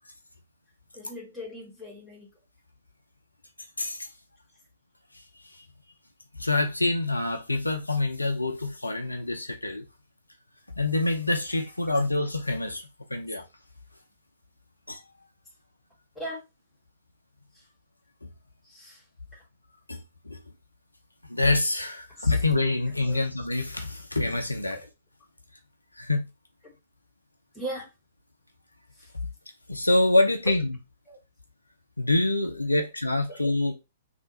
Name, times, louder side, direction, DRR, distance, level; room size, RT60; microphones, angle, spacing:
voice 1, 0.9-2.3 16.1-16.4 17.5-17.6 18.6-19.0 19.3-19.4 22.1-22.4 23.1-23.2 24.7-24.9 26.6-26.7 27.5-27.9 29.0-29.1 31.1-31.2 32.8-32.9 33.3-33.4, right 1 dB, 5° left, 1.7 m, -39 dB
voice 2, 3.8-4.1 6.4-9.9 10.8-12.8 13.1-13.4 14.9-15.0 18.2-18.3 19.9-20.4 21.3-24.8 26.0-26.3 29.7-30.8 32.0-33.7, left 2 dB, 80° left, 0.6 m, -26 dB
3.4 x 2.6 x 3.9 m
figure-of-eight pair, 115°, 0 cm